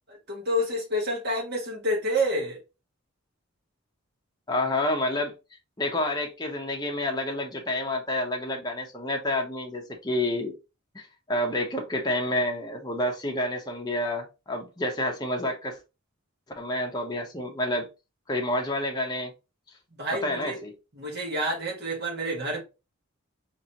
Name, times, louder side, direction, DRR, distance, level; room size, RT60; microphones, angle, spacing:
voice 1, 0.1-2.6 19.9-20.6 20.9-22.6, equal, 50° right, 1.6 m, -28 dB
voice 2, 4.5-5.3 5.8-10.6 10.9-15.8 16.6-17.9 18.3-19.3 20.2-20.7, left 1 dB, 20° left, 0.8 m, -29 dB
4.0 x 3.0 x 2.9 m
head